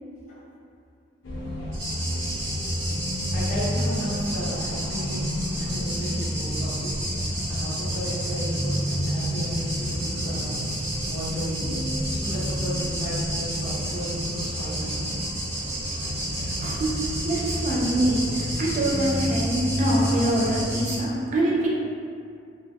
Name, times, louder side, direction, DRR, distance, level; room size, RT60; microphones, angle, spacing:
sound 1, 1.2-20.8, equal, 90° left, 0.6 m, -30 dB
sound 2, 1.7-21.0, right 1 dB, 60° right, 0.8 m, -33 dB
voice 1, 3.3-5.2 5.6-7.0 7.5-10.5 11.0-11.8 12.1-14.9, equal, 40° left, -10 dB, 0.8 m, -33 dB
voice 2, 16.4-16.9 17.2-21.8, right 1 dB, 40° right, -4 dB, 0.3 m, -25 dB
2.5 x 2.1 x 2.4 m, 2.4 s
head